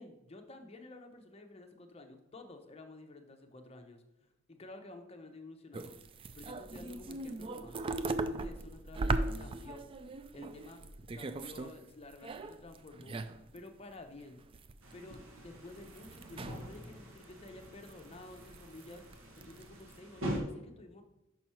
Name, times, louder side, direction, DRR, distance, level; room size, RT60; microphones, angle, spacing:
voice 1, 0.0-6.0 6.3-9.8 10.3-10.8 11.1-13.2 13.5-14.4 14.9-19.0 19.4-21.0, left 2 dB, 30° left, 5 dB, 0.7 m, -51 dB
sound 1, 5.7-11.8 12.0-13.6 13.9-14.0 14.4-14.9 15.1-16.8 17.2-17.9 18.3-19.1 19.4-19.9, right 2 dB, 25° right, 0.3 m, -38 dB
sound 2, 14.8-20.4, equal, 65° right, 1.2 m, -44 dB
5.9 x 5.5 x 4.3 m, 0.96 s
head